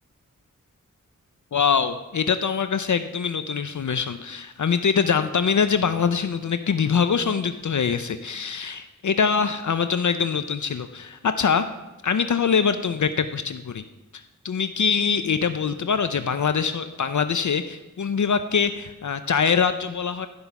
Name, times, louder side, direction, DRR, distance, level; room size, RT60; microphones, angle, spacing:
voice 1, 1.5-11.7 12.0-13.8 14.1-20.3, left 6 dB, 65° left, 10 dB, 0.5 m, -23 dB
12.0 x 5.5 x 5.8 m, 1.0 s
wide cardioid pair, 60°, 32 cm